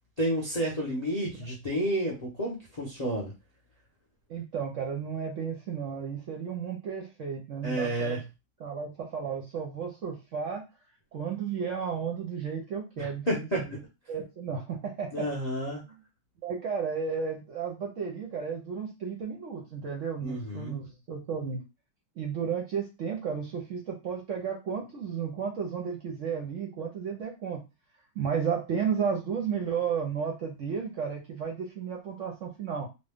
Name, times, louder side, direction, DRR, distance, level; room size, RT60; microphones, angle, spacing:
voice 1, 0.2-3.3 7.6-8.3 13.0-13.8 15.1-15.8 20.2-20.8, right 1 dB, 40° left, -3 dB, 0.5 m, -31 dB
voice 2, 4.3-8.2 8.6-10.6 11.1-13.8 14.1-15.3 16.4-21.6 22.2-27.6 28.2-32.9, right 6 dB, 60° right, 0 dB, 0.8 m, -33 dB
3.0 x 2.2 x 3.4 m, 0.26 s
omnidirectional pair, 1.9 m